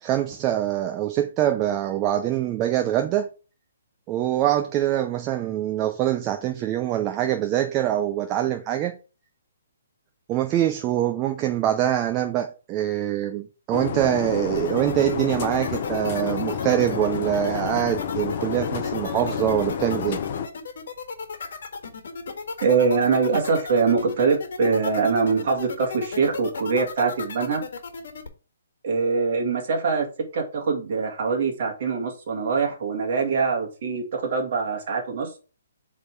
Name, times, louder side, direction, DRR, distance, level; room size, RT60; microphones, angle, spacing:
voice 1, 0.0-3.3 4.1-8.9 10.3-20.2, right 12 dB, 15° right, 0.5 m, -24 dB
sound 1, 13.7-20.5, left 8 dB, 30° left, 0.7 m, -30 dB
sound 2, 14.5-28.3, left 5 dB, 45° left, 1.6 m, -35 dB
voice 2, 22.6-27.6 28.8-30.1 30.3-35.3, right 5 dB, 35° right, 2.0 m, -23 dB
8.2 x 3.6 x 4.7 m
hypercardioid pair, 180°, 0 cm